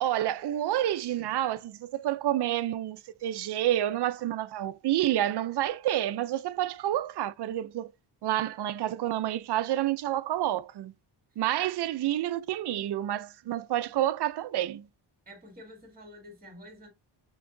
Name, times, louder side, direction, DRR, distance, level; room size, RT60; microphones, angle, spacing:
voice 1, 0.0-7.9 8.2-10.9 11.4-14.9, right 13 dB, 60° right, 0.5 m, -29 dB
voice 2, 15.3-16.9, equal, 20° right, 2.0 m, -48 dB
6.2 x 3.0 x 2.6 m
wide cardioid pair, 180°, 45 cm